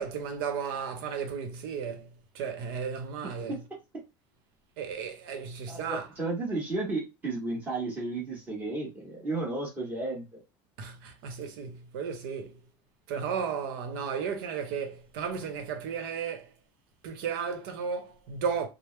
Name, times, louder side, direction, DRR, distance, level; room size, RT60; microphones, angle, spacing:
voice 1, 0.0-3.6 4.8-6.1 10.8-12.6 13.1-16.5 17.0-18.7, right 6 dB, 80° right, 0.9 m, -34 dB
voice 2, 5.7-10.4, right 2 dB, 15° right, 1.3 m, -33 dB
3.3 x 2.0 x 3.2 m
cardioid pair, 175°, 11 cm